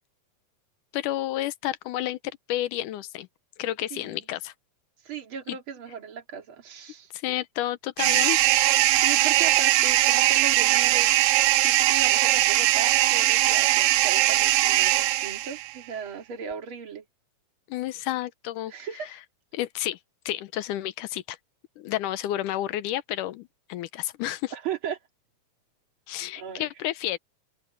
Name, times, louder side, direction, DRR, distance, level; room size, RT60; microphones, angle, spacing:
voice 1, 0.9-2.2 2.5-3.3 3.6-4.5 5.5-5.6 7.1-8.4 17.7-18.7 19.5-20.0 20.3-21.4 21.8-24.5 26.1-27.2, left 14 dB, 85° left, 2.4 m, -30 dB
voice 2, 5.0-7.1 9.0-11.1 11.6-17.0 18.7-19.2 24.5-25.0 26.3-26.6, right 7 dB, 45° right, 2.9 m, -37 dB
sound 1, 8.0-15.7, right 16 dB, 90° right, 1.4 m, -21 dB
open air
omnidirectional pair, 3.6 m